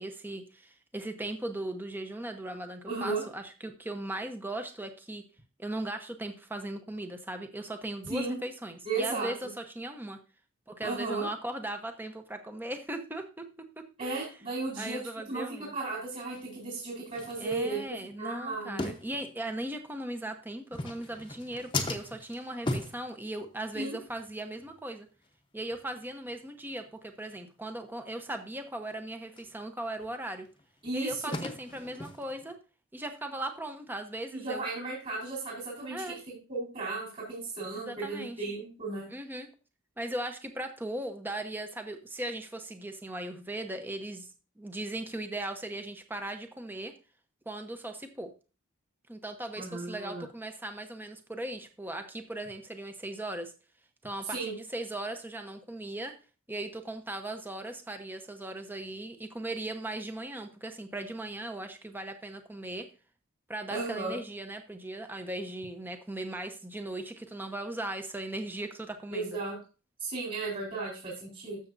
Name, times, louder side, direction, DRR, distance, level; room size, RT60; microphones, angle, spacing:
voice 1, 0.0-5.2 5.6-10.2 10.7-13.4 14.0-14.3 14.8-15.7 17.4-25.1 25.5-30.5 30.9-32.6 32.9-34.6 35.9-36.2 37.7-38.4 39.1-39.5 40.0-44.3 44.6-46.9 47.5-48.3 49.1-53.5 54.0-56.1 56.5-62.9 63.5-69.4, right 1 dB, 10° right, 6 dB, 0.9 m, -38 dB
voice 2, 2.9-3.2 8.1-8.4 8.8-9.3 10.8-11.3 14.0-15.0 15.3-15.4 15.7-18.9 23.7-24.0 30.8-31.3 34.3-39.1 49.6-50.2 54.2-54.6 63.7-64.2 69.1-69.6 70.0-71.6, right 3 dB, 40° right, -5 dB, 4.1 m, -35 dB
sound 1, 16.3-16.4 17.1-18.1 18.8-19.7 20.6-23.8 24.1-24.3 24.6-24.8 25.2-25.3 25.7-25.9 26.3-26.4 26.7-26.8 27.3-27.4 29.4-29.5 30.0-32.5, left 2 dB, 25° left, 1.0 m, -38 dB
13.0 x 7.1 x 2.7 m, 0.33 s
head